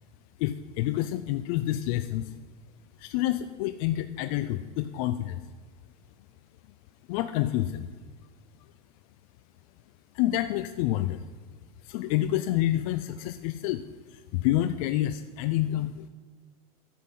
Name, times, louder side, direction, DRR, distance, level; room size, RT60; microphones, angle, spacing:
voice 1, 0.4-2.3 3.0-5.4 7.1-7.9 10.1-11.2 11.8-16.1, left 14 dB, 70° left, 11 dB, 0.6 m, -28 dB
10.5 x 7.7 x 7.3 m, 1.5 s
supercardioid pair, 105°, 19 cm